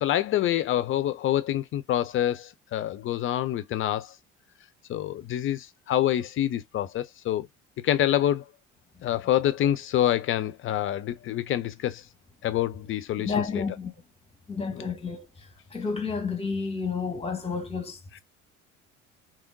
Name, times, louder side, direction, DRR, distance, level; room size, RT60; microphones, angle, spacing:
voice 1, 0.0-4.1 4.9-7.5 7.8-8.4 9.0-12.0 12.4-13.6 14.8-14.9 18.1-18.2, left 12 dB, 35° left, 0.4 m, -26 dB
voice 2, 13.2-13.9 14.5-15.2 15.7-18.0, left 5 dB, 15° left, 1.1 m, -30 dB
3.5 x 2.9 x 2.6 m
figure-of-eight pair, 60°, 38 cm